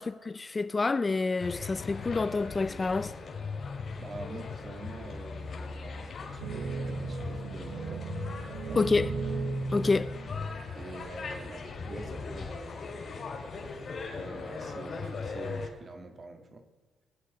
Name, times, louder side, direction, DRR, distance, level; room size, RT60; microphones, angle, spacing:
voice 1, 0.0-3.1 8.7-9.1 9.7-10.1, left 3 dB, 25° left, 0.4 m, -28 dB
sound 1, 1.4-15.7, left 4 dB, 50° left, 4.3 m, -39 dB
voice 2, 4.0-8.1 8.5-8.8 10.8-16.7, right 3 dB, 40° right, 1.8 m, -46 dB
sound 2, 6.4-11.2 11.9-12.0 13.2-13.7 14.4-14.8, right 3 dB, 90° right, 1.6 m, -36 dB
22.0 x 8.4 x 5.0 m
cardioid pair, 90°, 0 cm